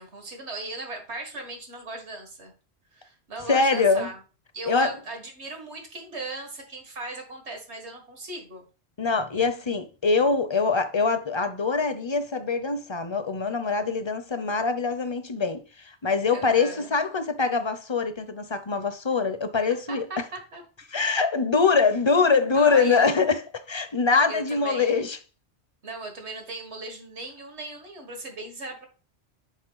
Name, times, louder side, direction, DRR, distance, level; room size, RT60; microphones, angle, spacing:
voice 1, 0.0-2.5 2.9-4.2 4.5-8.7 16.3-16.9 19.9-20.6 22.5-23.1 24.3-24.9 25.8-28.9, right 2 dB, 85° right, 2.0 m, -37 dB
voice 2, 3.5-4.1 4.7-5.0 9.0-20.2 20.9-25.2, left 4 dB, 30° left, 0.6 m, -24 dB
6.3 x 5.1 x 3.9 m
omnidirectional pair, 1.1 m